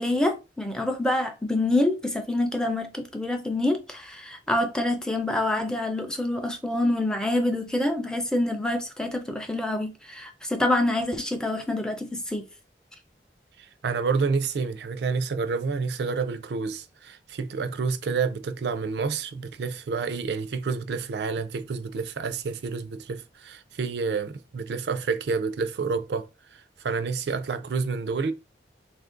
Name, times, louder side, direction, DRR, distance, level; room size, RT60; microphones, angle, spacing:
voice 1, 0.0-12.4, left 1 dB, 5° left, 0.4 m, -26 dB
voice 2, 13.6-28.3, right 4 dB, 70° right, 0.4 m, -29 dB
2.8 x 2.5 x 3.7 m
head